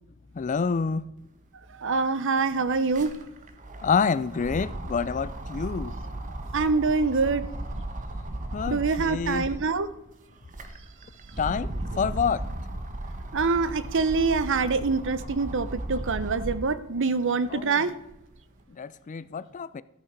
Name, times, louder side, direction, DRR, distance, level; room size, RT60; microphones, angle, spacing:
voice 1, 0.3-1.1 3.8-5.9 8.5-9.5 11.4-12.5 17.5-17.9 18.7-19.8, left 5 dB, 35° left, 0.4 m, -28 dB
sound 1, 1.6-1.7 2.0-9.8 10.3-16.8 17.3-18.4, right 1 dB, 35° right, 1.1 m, -36 dB
voice 2, 1.7-3.1 6.5-7.4 8.7-9.9 13.3-17.9, right 4 dB, 60° right, 0.8 m, -25 dB
13.5 x 8.3 x 5.2 m
head